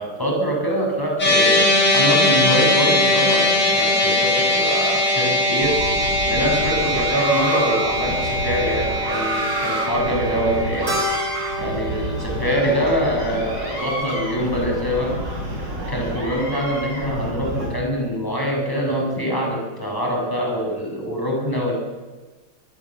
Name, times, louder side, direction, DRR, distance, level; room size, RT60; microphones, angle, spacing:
voice 1, 0.0-5.8 6.3-11.0 11.6-15.2 15.8-21.7, equal, 10° left, 0 dB, 7.4 m, -24 dB
sound 1, 1.2-13.6, left 1 dB, 65° left, 9.0 m, -21 dB
sound 2, 5.6-17.7, right 1 dB, 65° right, 7.9 m, -29 dB
Keyboard (musical), 10.9-15.5, equal, 35° right, 5.4 m, -33 dB
23.5 x 22.0 x 7.5 m, 1.3 s
omnidirectional pair, 2.1 m